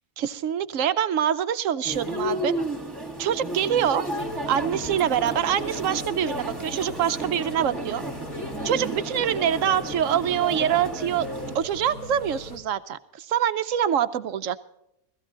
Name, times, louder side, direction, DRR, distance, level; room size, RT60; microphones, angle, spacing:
voice 1, 0.2-2.5 3.2-4.1 4.5-8.0 8.6-11.3 11.5-14.6, right 9 dB, 65° right, 13 dB, 1.1 m, -25 dB
sound 1, 1.8-11.6, right 1 dB, 15° right, 2.1 m, -32 dB
sound 2, 4.2-12.6, left 1 dB, 70° left, 3.2 m, -41 dB
16.0 x 15.5 x 3.8 m, 0.81 s
omnidirectional pair, 1.5 m